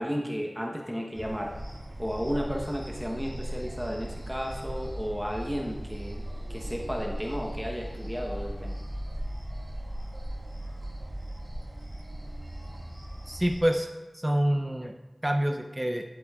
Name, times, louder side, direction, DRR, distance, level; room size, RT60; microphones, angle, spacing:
voice 1, 0.0-1.6 2.0-6.2 6.5-8.8, equal, ahead, 0 dB, 0.9 m, -33 dB
sound 1, 1.1-13.6, right 1 dB, 40° right, 1.9 m, -38 dB
voice 2, 13.3-13.9 14.1-14.9 15.2-16.0, equal, 15° right, 4 dB, 0.5 m, -26 dB
10.5 x 8.1 x 2.4 m, 1.1 s
wide cardioid pair, 50°, 0 cm